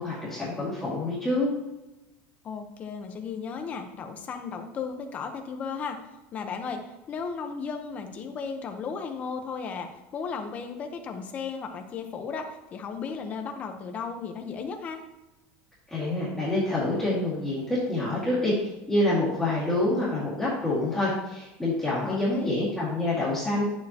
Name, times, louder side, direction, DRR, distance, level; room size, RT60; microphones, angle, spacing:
voice 1, 0.0-1.5 15.9-23.6, left 2 dB, ahead, -11 dB, 2.1 m, -27 dB
voice 2, 2.4-6.0 6.3-15.0 22.0-22.6, left 5 dB, 25° left, 5 dB, 0.9 m, -35 dB
11.0 x 7.6 x 2.9 m, 0.99 s
cardioid pair, 180°, 6 cm